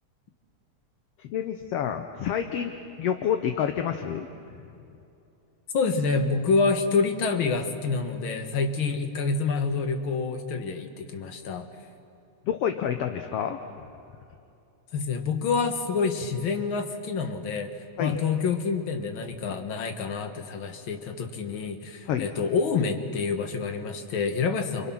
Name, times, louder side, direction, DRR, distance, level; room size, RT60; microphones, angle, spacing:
voice 1, 1.2-4.3 4.6-4.7 12.4-13.6 18.0-18.2 19.5-19.6 22.1-22.3, left 9 dB, 65° left, 6 dB, 1.7 m, -28 dB
voice 2, 5.7-11.7 14.9-17.7 18.0-24.9, left 4 dB, 50° left, 6 dB, 2.0 m, -27 dB
29.5 x 26.0 x 6.1 m, 2.7 s
omnidirectional pair, 3.4 m